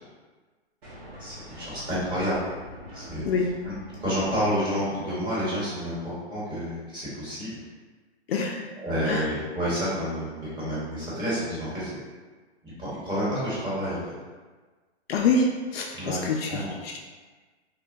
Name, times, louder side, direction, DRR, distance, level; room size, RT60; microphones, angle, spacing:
sound 1, 0.8-6.0, equal, 60° right, 1.1 m, -43 dB
voice 1, 1.2-2.4 2.9-3.2 3.6-3.7 4.0-7.6 8.8-11.9 12.8-14.0 15.9-16.2 16.5-16.7, equal, 15° right, -10 dB, 1.2 m, -29 dB
voice 2, 8.3-8.6 9.0-9.3 15.1-17.0, left 3 dB, 60° left, 1 dB, 0.4 m, -26 dB
3.5 x 2.2 x 2.5 m, 1.3 s
hypercardioid pair, 135°, 33 cm